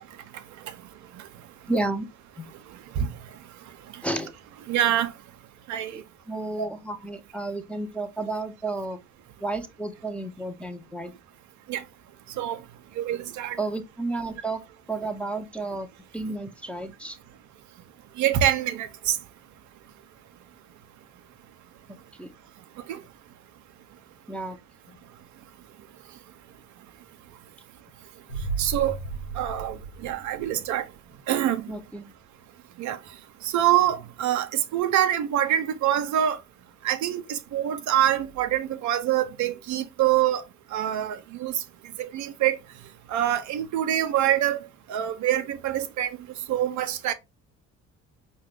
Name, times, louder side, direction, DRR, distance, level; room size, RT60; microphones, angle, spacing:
voice 1, 1.7-2.1 2.4-2.5 4.0-4.3 5.9-9.0 9.4-11.1 13.6-14.6 14.9-15.9 16.1-17.2 22.2-22.3 24.3-24.6 24.9-25.0 31.7-32.1, right 2 dB, 5° left, 0.5 m, -32 dB
voice 2, 4.7-5.1 5.7-6.0 6.6-6.7 11.7-11.8 12.4-12.6 13.0-13.6 18.2-19.2 22.9-23.0 28.6-29.0 29.4-30.8 31.3-31.7 32.8-33.0 33.4-36.4 36.8-40.4 40.7-41.6 42.0-42.6 43.1-44.6 44.9-46.2 46.5-47.1, right 11 dB, 50° right, 0.5 m, -25 dB
sound 1, 28.3-31.0 31.3-31.4, right 4 dB, 90° left, 0.6 m, -35 dB
5.6 x 2.2 x 3.4 m
figure-of-eight pair, 45°, 39 cm